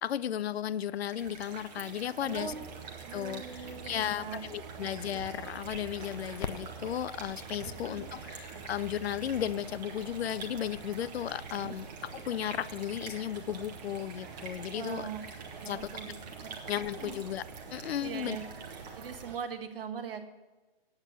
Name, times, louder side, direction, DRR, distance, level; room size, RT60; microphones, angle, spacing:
voice 1, 0.0-2.5 3.1-15.1 15.6-15.9 16.7-17.4 17.7-18.4, left 10 dB, 80° left, 18 dB, 0.6 m, -35 dB
sound 1, 0.9-19.5, right 4 dB, 40° right, 1.9 m, -47 dB
voice 2, 2.2-2.6 3.0-4.4 4.8-4.9 7.6-8.0 11.6-11.8 14.7-15.3 15.6-16.1 16.4-16.5 17.0-17.2 18.0-18.4 18.9-20.3, right 7 dB, 65° right, 6 dB, 1.5 m, -41 dB
sound 2, 2.3-19.4, right 6 dB, 25° right, 0.6 m, -48 dB
Crackle, 5.6-12.2, left 8 dB, 50° left, 0.7 m, -49 dB
9.6 x 8.9 x 6.0 m, 1.1 s
hypercardioid pair, 165°, 31 cm